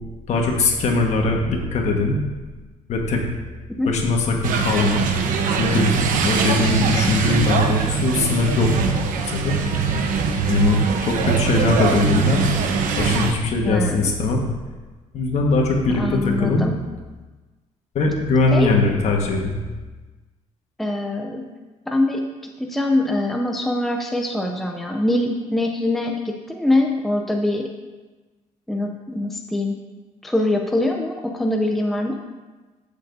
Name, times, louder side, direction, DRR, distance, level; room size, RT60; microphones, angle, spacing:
voice 1, 0.3-2.3 2.9-3.2 3.9-5.0 5.6-5.9 6.2-8.7 9.3-9.6 10.5-12.5 12.7-14.4 15.1-16.7 17.9-19.6, left 3 dB, 55° left, 1 dB, 1.5 m, -20 dB
sound 1, 4.4-13.3, right 5 dB, 80° right, 0.9 m, -22 dB
voice 2, 13.6-14.1 15.9-16.7 18.5-18.7 20.8-21.5 21.9-27.7 28.7-29.8 30.2-32.2, left 1 dB, ahead, 2 dB, 0.6 m, -23 dB
14.5 x 6.8 x 2.7 m, 1.3 s
cardioid pair, 145°, 14 cm